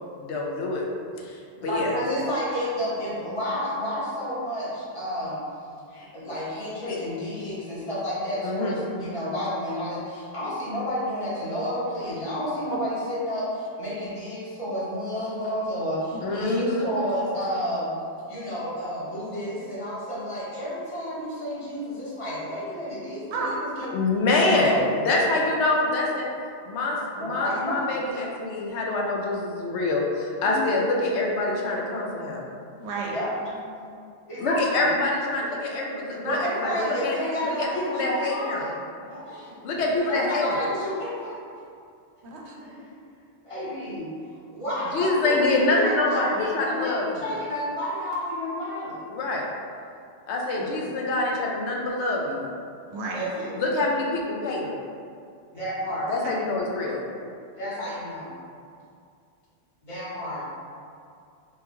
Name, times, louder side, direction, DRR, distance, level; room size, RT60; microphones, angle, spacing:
voice 1, 0.2-0.8 1.2-1.4 1.6-1.9 6.8-7.0 8.4-8.7 16.2-16.9 23.9-24.8 25.1-26.3 26.7-32.4 34.4-36.4 36.8-37.2 37.4-38.7 39.6-40.5 44.9-47.2 49.1-49.4 50.3-52.5 53.5-54.7 56.1-57.0, left 2 dB, 85° left, -2 dB, 0.9 m, -25 dB
voice 2, 1.6-5.4 5.9-17.9 18.3-23.9 24.5-25.0 27.2-27.8 30.4-30.6 33.1-33.9 34.3-34.8 36.2-39.5 40.0-41.4 42.5-42.9 43.4-44.1 44.5-49.0 50.5-50.9 53.1-53.5 55.5-56.4 57.6-58.3 59.8-60.5, equal, 30° left, -9 dB, 0.8 m, -31 dB
voice 3, 16.1-16.5 23.3-23.5 23.8-23.9 32.8-33.1 42.2-42.5 52.9-53.2, right 4 dB, 80° right, -2 dB, 0.8 m, -32 dB
3.5 x 2.2 x 2.9 m, 2.3 s
omnidirectional pair, 1.1 m